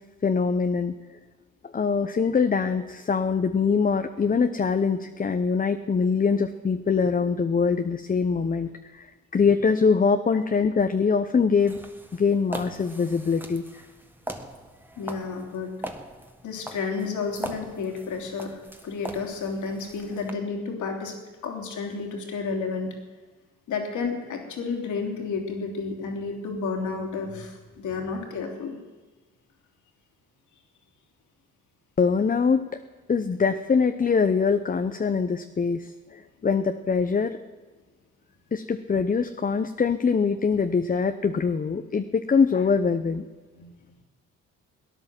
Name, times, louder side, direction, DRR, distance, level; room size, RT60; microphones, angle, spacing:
voice 1, 0.2-0.9 1.6-9.1 9.3-11.8 12.1-13.6 32.0-32.6 33.1-37.4 38.5-43.2, left 5 dB, 30° left, 8 dB, 0.8 m, -23 dB
sound 1, 11.6-20.3, right 1 dB, 5° right, 1.6 m, -41 dB
voice 2, 15.0-15.7 16.4-18.6 18.8-21.1 21.4-22.9 23.7-28.8 43.6-43.7, left 4 dB, 75° left, 2 dB, 3.2 m, -31 dB
18.0 x 10.5 x 7.6 m, 1.3 s
cardioid pair, 90°, 30 cm